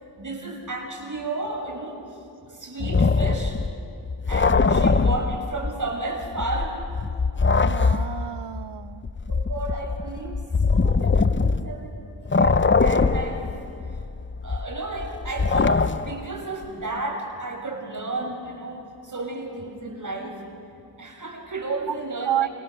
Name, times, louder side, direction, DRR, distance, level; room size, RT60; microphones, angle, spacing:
voice 1, 0.2-2.0 2.5-3.6 4.3-6.8 7.9-8.0 9.3-12.0 12.3-13.5 14.4-20.4 21.0-22.5, right 2 dB, 40° right, 1 dB, 5.9 m, -33 dB
sound 1, 2.8-5.9 6.2-12.0 12.3-16.3, left 4 dB, 25° left, 0.8 m, -22 dB
voice 2, 7.6-9.1 21.9-22.0 22.2-22.5, right 11 dB, 65° right, 16 dB, 0.9 m, -29 dB
29.0 x 28.0 x 7.0 m, 2.5 s
cardioid pair, 70°, 45 cm